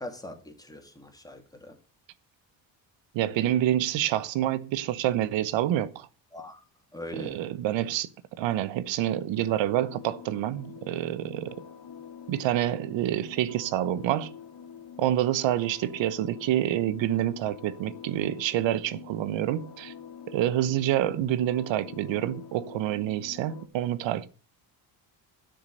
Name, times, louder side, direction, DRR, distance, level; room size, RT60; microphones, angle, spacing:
voice 1, 0.0-1.8 6.3-6.6 6.9-7.4, left 1 dB, 10° left, 3.2 m, -41 dB
voice 2, 3.1-6.1 7.1-8.1 8.4-11.6 12.3-14.3 15.0-19.9 20.3-24.3, right 12 dB, 75° right, 1.1 m, -27 dB
sound 1, 9.3-23.7, left 7 dB, 55° left, 2.5 m, -46 dB
12.0 x 6.7 x 6.6 m
cardioid pair, 105°, 45 cm